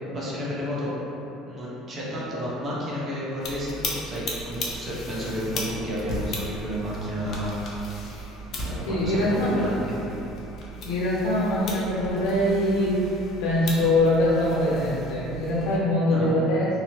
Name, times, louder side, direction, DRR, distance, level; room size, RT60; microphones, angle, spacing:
voice 1, 0.1-0.9 1.5-7.6 8.5-10.0 16.1-16.3, equal, 25° right, -7 dB, 0.6 m, -31 dB
sound 1, 3.4-15.8, equal, 35° left, 0.4 m, -36 dB
voice 2, 8.9-9.5 10.8-12.9 13.4-16.8, left 1 dB, 80° left, -5 dB, 0.7 m, -23 dB
3.0 x 2.6 x 2.8 m, 3.0 s
cardioid pair, 180°, 0 cm